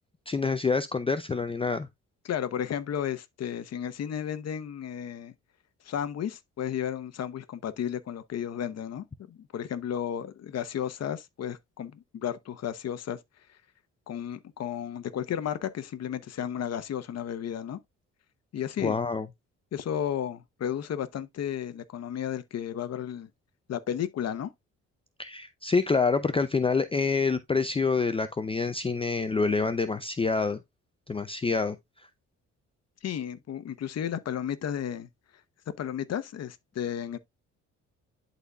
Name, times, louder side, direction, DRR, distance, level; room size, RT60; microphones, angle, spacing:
voice 1, 0.3-1.9 18.8-19.3 25.2-30.6 31.1-31.8, left 4 dB, 20° left, 0.5 m, -27 dB
voice 2, 2.2-5.3 5.8-13.2 14.1-17.8 18.5-19.0 19.7-23.3 23.7-24.5 33.0-35.1 35.8-37.2, left 9 dB, 55° left, 1.0 m, -33 dB
11.5 x 4.1 x 2.3 m
cardioid pair, 90°, 30 cm